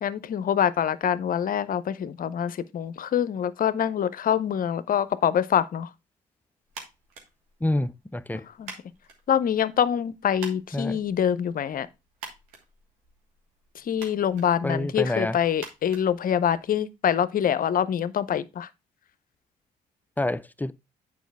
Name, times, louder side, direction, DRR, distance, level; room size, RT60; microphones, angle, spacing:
voice 1, 0.0-5.9 8.6-8.7 9.3-11.9 13.8-18.7, left 9 dB, 45° left, 0.7 m, -25 dB
sound 1, 6.7-16.9, right 4 dB, 75° right, 1.7 m, -48 dB
voice 2, 7.6-8.5 10.7-11.0 14.6-15.4 20.2-20.7, left 1 dB, 10° left, 0.5 m, -27 dB
9.2 x 4.8 x 3.5 m
figure-of-eight pair, 45°, 20 cm